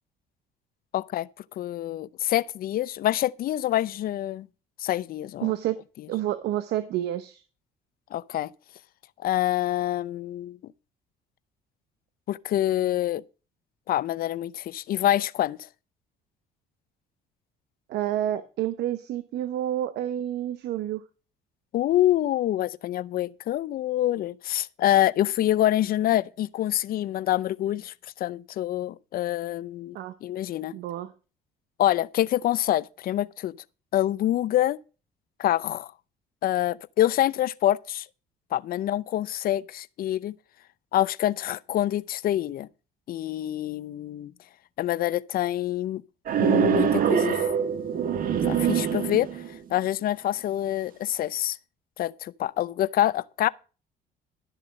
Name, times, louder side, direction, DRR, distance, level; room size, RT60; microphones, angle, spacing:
voice 1, 0.9-1.3 1.6-4.5 4.8-5.5 8.1-8.5 9.2-10.6 12.3-13.2 13.9-15.6 21.7-30.8 31.8-33.6 33.9-34.8 35.4-35.9 36.4-38.1 38.5-40.3 40.9-42.7 43.1-44.3 44.8-46.0 46.4-47.4 48.4-49.4 49.7-51.6 52.0-53.5, left 13 dB, 60° left, 0.6 m, -26 dB
voice 2, 5.4-5.8 6.1-7.4 17.9-21.0 29.9-30.1 30.7-31.1, right 12 dB, 75° right, 0.9 m, -29 dB
sound 1, 46.3-49.6, right 8 dB, 55° right, 1.6 m, -24 dB
12.5 x 7.3 x 5.2 m
cardioid pair, 110°, 17 cm